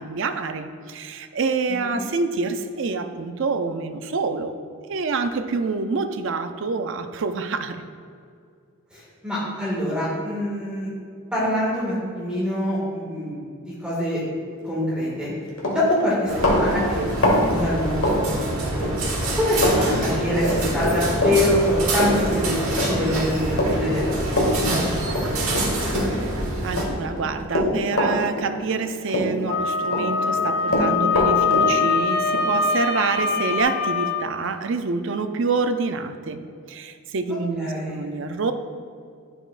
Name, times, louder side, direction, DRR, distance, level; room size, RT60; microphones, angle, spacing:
voice 1, 0.0-4.6 4.9-7.8 26.0-36.4 36.7-38.5, right 4 dB, 60° right, 9 dB, 0.4 m, -27 dB
voice 2, 8.9-10.9 11.3-14.2 14.6-15.3 15.6-18.9 19.4-23.4 23.7-24.2 24.4-24.6 37.6-38.1, left 1 dB, 5° right, -8 dB, 1.9 m, -25 dB
Run, 15.1-15.3 15.6-18.9 19.2-19.8 20.0-26.4 26.7-28.8 29.1-30.0 30.3-33.6, left 1 dB, 70° left, 1.4 m, -24 dB
sound 1, 16.3-26.8, right 1 dB, 75° right, 1.4 m, -26 dB
Wind instrument woodwind instrument, 29.5-34.2, left 5 dB, 45° left, 0.4 m, -23 dB
9.8 x 6.8 x 2.5 m, 2.2 s
head